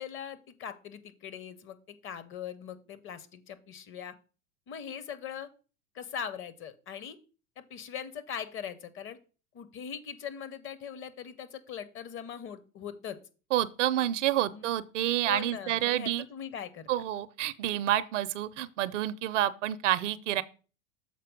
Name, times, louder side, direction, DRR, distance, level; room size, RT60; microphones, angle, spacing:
voice 1, 0.0-4.1 4.7-5.5 5.9-7.2 7.6-9.2 9.5-13.2 14.5-14.7 15.2-16.9, left 8 dB, 30° left, 0.8 m, -41 dB
voice 2, 13.5-16.2 16.9-20.4, right 13 dB, 60° right, 0.6 m, -29 dB
6.7 x 4.3 x 5.1 m
figure-of-eight pair, 85°, 41 cm